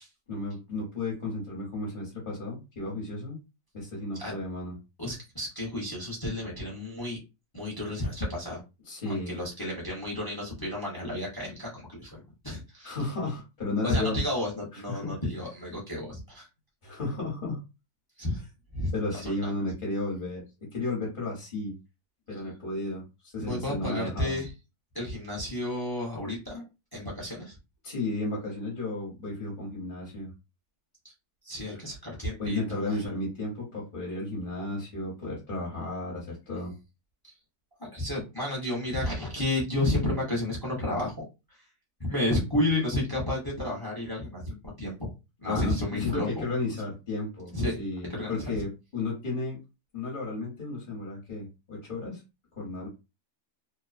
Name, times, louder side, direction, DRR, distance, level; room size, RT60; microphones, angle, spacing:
voice 1, 0.3-3.4 3.7-4.7 8.9-9.3 12.8-14.2 14.7-15.2 16.8-17.6 18.9-20.4 20.7-21.7 22.3-24.4 27.8-30.3 32.4-36.7 45.4-49.6 49.9-52.2 52.6-52.9, left 2 dB, 35° left, -3 dB, 0.9 m, -33 dB
voice 2, 5.0-7.2 7.5-8.6 9.1-13.0 13.8-16.5 18.2-18.4 18.7-19.4 23.4-24.5 24.9-26.6 26.9-27.6 31.4-33.0 37.8-41.2 42.0-45.1 45.4-46.4 47.5-47.8 48.2-48.6, left 1 dB, 20° left, -3 dB, 0.6 m, -31 dB
2.7 x 2.2 x 2.4 m, 0.26 s
omnidirectional pair, 1.7 m